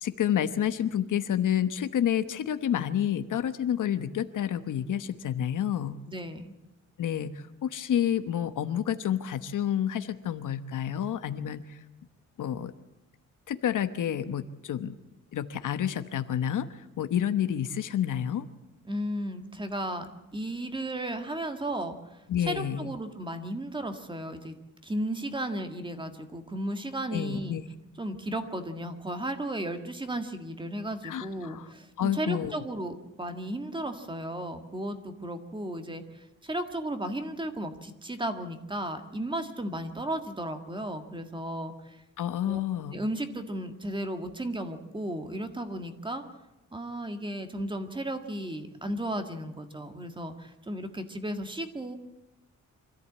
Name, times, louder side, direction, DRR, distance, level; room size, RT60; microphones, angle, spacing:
voice 1, 0.0-6.0 7.0-11.8 12.4-12.7 13.5-14.9 15.3-18.5 22.3-22.9 27.1-27.6 31.0-31.7 32.0-32.5 42.2-43.0, left 10 dB, 70° left, 12 dB, 1.1 m, -29 dB
voice 2, 6.1-6.5 18.9-24.5 24.8-27.6 28.0-42.0 42.5-42.6 42.9-46.2 46.7-52.0, right 1 dB, 15° right, 7 dB, 1.7 m, -34 dB
25.0 x 14.5 x 8.5 m, 0.96 s
wide cardioid pair, 165°, 32 cm